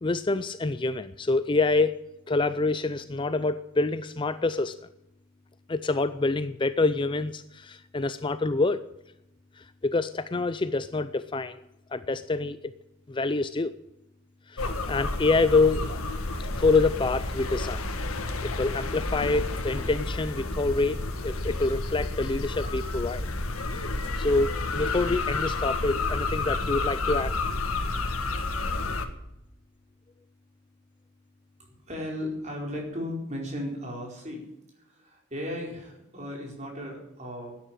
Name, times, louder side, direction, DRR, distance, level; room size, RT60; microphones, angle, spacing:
voice 1, 0.0-2.0 2.3-4.8 5.7-8.8 9.6-11.6 11.9-12.7 13.1-13.7 14.5-15.9 16.6-17.9 18.4-23.3 24.2-27.4, left 3 dB, 25° left, 13 dB, 0.4 m, -26 dB
sound 1, 14.6-29.1, left 2 dB, 85° left, 1.7 m, -30 dB
voice 2, 31.9-34.4 34.9-37.6, left 1 dB, 35° right, 0 dB, 4.5 m, -36 dB
12.5 x 10.0 x 9.2 m, 0.87 s
head